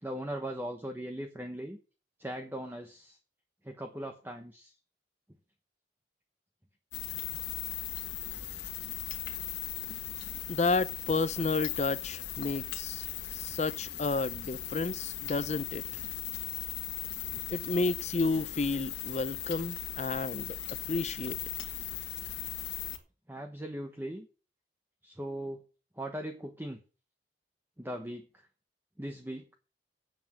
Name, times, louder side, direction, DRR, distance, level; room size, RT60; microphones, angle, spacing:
voice 1, 0.0-1.8 2.2-3.2 3.6-4.7 23.3-24.3 25.0-25.6 26.0-26.8 27.8-28.3 29.0-29.5, right 1 dB, 10° right, 0.9 m, -39 dB
sound 1, 6.9-23.0, left 11 dB, 70° left, 1.7 m, -38 dB
voice 2, 10.5-15.8 17.5-20.6 20.9-21.4, left 3 dB, 35° left, 0.5 m, -31 dB
8.9 x 7.3 x 7.4 m
head